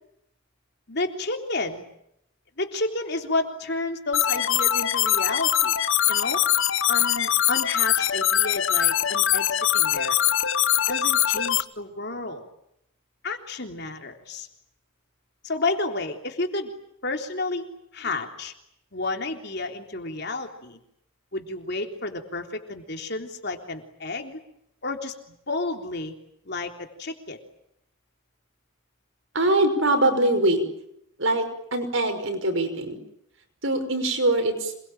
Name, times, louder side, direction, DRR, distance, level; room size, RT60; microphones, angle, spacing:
voice 1, 0.9-1.8 2.6-5.7 6.1-6.4 6.9-10.2 10.9-12.5 13.2-14.5 15.4-16.7 17.0-17.7 17.9-18.5 18.9-20.8 21.3-24.4 24.8-25.1 25.5-26.1 26.5-27.4, left 2 dB, 50° left, 4 dB, 3.6 m, -31 dB
sound 1, 4.1-11.6, left 11 dB, 65° left, 1.1 m, -22 dB
voice 2, 29.3-30.6 31.2-33.0 33.6-34.7, right 2 dB, 65° right, 7 dB, 5.8 m, -23 dB
27.0 x 22.5 x 9.2 m, 0.76 s
head